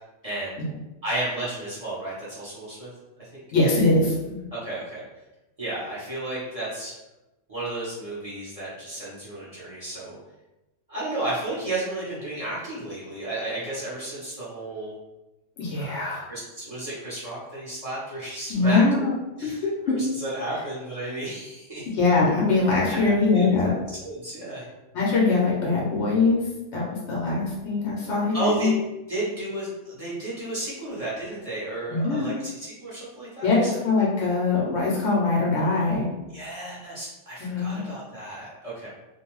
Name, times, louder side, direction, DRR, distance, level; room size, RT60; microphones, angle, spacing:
voice 1, 0.2-0.6 1.0-2.9 3.3-3.4 4.5-5.0 5.6-6.9 7.5-10.2 10.9-14.9 15.7-18.9 19.4-21.9 22.9-23.5 24.0-24.7 28.3-28.7 29.1-33.7 36.3-38.9, right 2 dB, 35° right, -9 dB, 0.8 m, -33 dB
voice 2, 3.5-4.4 15.6-16.2 18.5-19.0 19.4-20.0 21.9-23.8 24.9-26.4 26.7-28.7 31.9-32.3 33.4-36.1 37.4-37.8, left 3 dB, 70° left, -5 dB, 1.0 m, -22 dB
2.5 x 2.2 x 3.0 m, 1.0 s
omnidirectional pair, 1.3 m